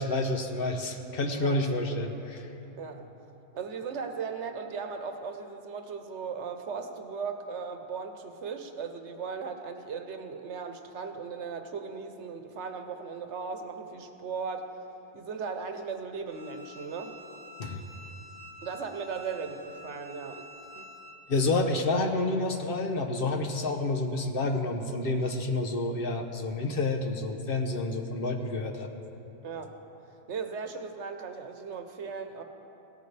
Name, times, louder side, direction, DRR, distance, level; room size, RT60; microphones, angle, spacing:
voice 1, 0.0-2.5 17.6-17.8 21.3-28.9, left 2 dB, 55° left, 4 dB, 1.0 m, -29 dB
voice 2, 3.5-14.7 15.1-17.1 18.6-20.4 20.7-20.9 29.4-29.7 30.3-32.4, right 5 dB, 85° right, 6 dB, 1.2 m, -37 dB
Bowed string instrument, 16.3-21.2, left 1 dB, 55° right, 1.3 m, -48 dB
17.0 x 14.0 x 3.3 m, 2.9 s
omnidirectional pair, 1.2 m